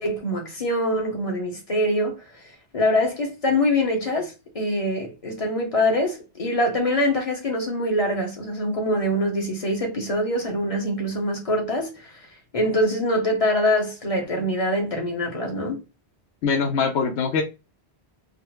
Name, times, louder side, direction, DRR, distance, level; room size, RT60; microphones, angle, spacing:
voice 1, 0.0-2.4 2.7-12.1 12.5-15.8, left 1 dB, 35° left, 1.1 m, -24 dB
voice 2, 16.4-17.4, left 5 dB, 90° left, 0.9 m, -22 dB
3.8 x 2.1 x 3.0 m
omnidirectional pair, 1.1 m